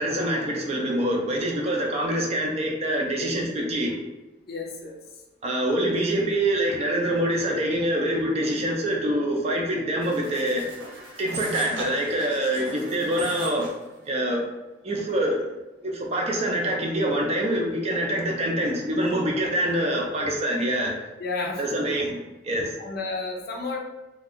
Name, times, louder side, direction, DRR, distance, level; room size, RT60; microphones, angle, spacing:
voice 1, 0.0-3.9 5.4-10.7 11.2-13.7 14.1-14.4 14.8-15.4 15.8-21.0 21.6-22.2 22.4-22.7, right 1 dB, 35° right, -1 dB, 0.5 m, -25 dB
voice 2, 4.5-5.0 21.2-22.0 22.8-23.8, left 3 dB, 55° left, 1 dB, 0.5 m, -32 dB
sound 1, 10.0-13.8, right 2 dB, 85° right, 0.7 m, -38 dB
2.4 x 2.3 x 3.4 m, 1.0 s
head